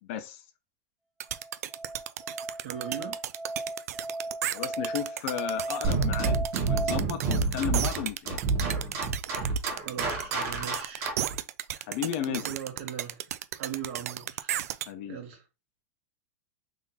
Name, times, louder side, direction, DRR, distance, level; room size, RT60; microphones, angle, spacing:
voice 1, 0.1-0.4 4.5-8.4 11.9-12.4 14.9-15.2, left 10 dB, 50° left, 0.8 m, -34 dB
sound 1, 1.2-14.9, right 12 dB, 80° right, 0.4 m, -34 dB
Musical instrument, 1.3-7.0, right 2 dB, 5° right, 0.5 m, -36 dB
voice 2, 2.6-3.2 9.8-11.1 12.3-14.6 15.1-15.4, right 9 dB, 55° right, 1.5 m, -39 dB
sound 2, 5.8-11.4, right 4 dB, 35° right, 1.5 m, -28 dB
3.7 x 2.8 x 4.1 m
supercardioid pair, 150°, 8 cm